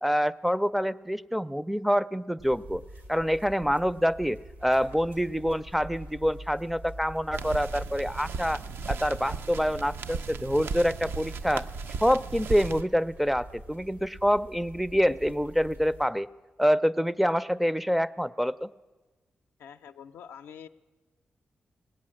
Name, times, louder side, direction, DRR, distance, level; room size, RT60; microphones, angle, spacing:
voice 1, 0.0-2.8 3.1-8.6 8.9-11.7 12.0-16.3 16.6-18.7, equal, 5° right, 16 dB, 0.4 m, -26 dB
sound 1, 2.4-16.1, right 1 dB, 90° right, 1.9 m, -47 dB
sound 2, 7.3-12.8, right 4 dB, 70° right, 0.4 m, -36 dB
voice 2, 19.6-20.7, left 8 dB, 90° left, 7 dB, 0.4 m, -46 dB
19.0 x 8.3 x 7.6 m, 1.3 s
cardioid pair, 55°, 4 cm